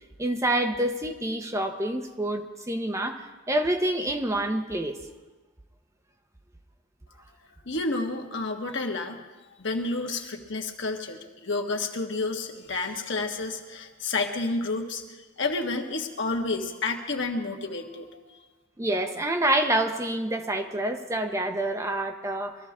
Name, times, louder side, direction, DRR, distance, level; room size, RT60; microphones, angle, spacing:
voice 1, 0.2-5.0 18.8-22.6, right 1 dB, 15° right, 5 dB, 0.8 m, -27 dB
voice 2, 7.6-9.2 9.6-15.0 15.4-18.2, left 3 dB, 70° left, 3 dB, 1.4 m, -30 dB
22.5 x 14.0 x 3.7 m, 1.2 s
head